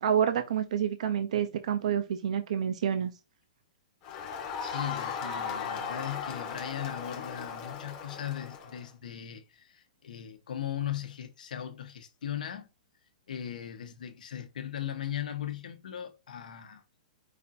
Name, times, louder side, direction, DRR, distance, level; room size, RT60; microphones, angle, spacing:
voice 1, 0.0-3.1, right 8 dB, 55° right, 0.5 m, -28 dB
Crowd, 4.0-8.8, left 6 dB, 20° left, 0.8 m, -37 dB
voice 2, 4.6-12.7 13.3-16.8, left 10 dB, 80° left, 1.0 m, -38 dB
5.2 x 2.5 x 4.1 m
hypercardioid pair, 175°, 4 cm